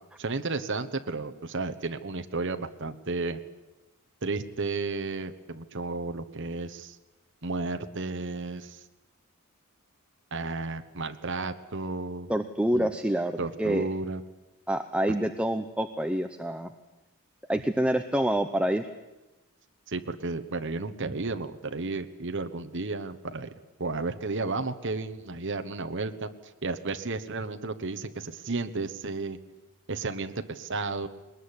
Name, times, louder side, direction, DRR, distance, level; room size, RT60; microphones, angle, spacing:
voice 1, 0.2-3.4 4.2-7.0 7.4-8.8 10.3-12.3 12.7-12.9 13.4-14.2 19.9-23.5 23.8-26.3 26.6-29.4 29.9-31.1, right 3 dB, 55° right, 8 dB, 1.2 m, -33 dB
voice 2, 12.3-13.9 14.7-16.7 17.5-18.8, right 1 dB, 5° right, 7 dB, 0.7 m, -27 dB
21.0 x 20.0 x 9.9 m, 1.1 s
head